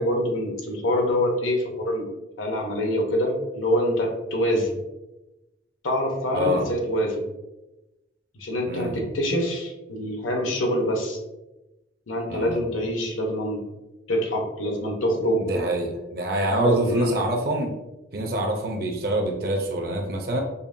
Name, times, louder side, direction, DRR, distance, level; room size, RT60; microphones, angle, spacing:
voice 1, 0.0-2.1 2.4-4.8 5.8-7.2 8.3-11.2 12.1-13.6 14.1-15.4 16.6-17.2, equal, 90° left, 1 dB, 0.8 m, -25 dB
voice 2, 6.3-6.6 8.7-9.0 12.3-12.6 15.4-17.7 18.1-20.4, right 1 dB, 50° right, 2 dB, 0.6 m, -25 dB
5.4 x 2.1 x 2.6 m, 0.99 s
head